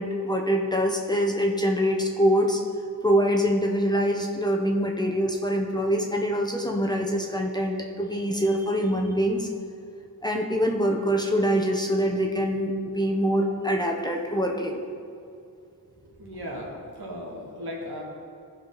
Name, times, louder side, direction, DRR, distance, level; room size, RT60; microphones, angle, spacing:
voice 1, 0.0-2.6 3.0-9.5 10.2-14.8, equal, 10° left, 1 dB, 0.9 m, -24 dB
voice 2, 16.0-18.0, equal, 70° right, -3 dB, 2.2 m, -37 dB
14.5 x 5.1 x 4.0 m, 2.4 s
cardioid pair, 65°, 39 cm